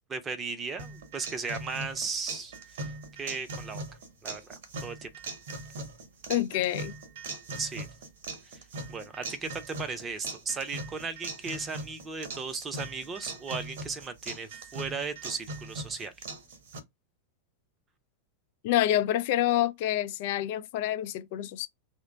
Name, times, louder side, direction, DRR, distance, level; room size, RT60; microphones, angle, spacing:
voice 1, 0.1-2.5 2.8-2.9 3.2-3.8 4.2-5.1 7.6-7.9 8.4-8.6 8.9-16.1, right 4 dB, 20° right, 0.7 m, -36 dB
sound 1, 0.8-16.8, right 2 dB, 55° right, 1.0 m, -40 dB
voice 2, 6.3-6.9 18.6-21.7, left 12 dB, 50° left, 0.5 m, -27 dB
2.9 x 2.2 x 3.9 m
figure-of-eight pair, 90°, 0 cm